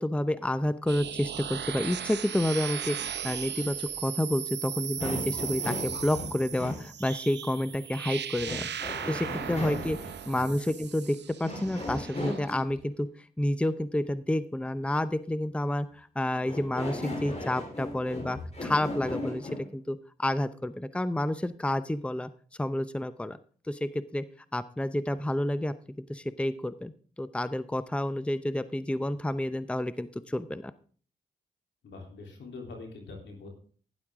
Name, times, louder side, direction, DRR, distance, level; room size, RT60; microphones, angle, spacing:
voice 1, 0.0-3.0 3.2-10.0 10.3-13.1 13.4-22.3 22.6-23.4 23.7-24.2 24.5-25.7 26.1-26.9 27.2-30.7, left 1 dB, 5° left, 14 dB, 0.7 m, -30 dB
sound 1, 0.9-12.5, right 9 dB, 70° right, 0.8 m, -37 dB
sound 2, 5.0-6.9 8.4-10.1 11.4-12.8 16.4-19.7, left 1 dB, 35° left, 4.2 m, -37 dB
voice 2, 9.6-10.7 31.8-33.5, left 3 dB, 85° left, 1 dB, 3.4 m, -45 dB
12.0 x 10.5 x 3.7 m, 0.43 s
cardioid pair, 55°, 18 cm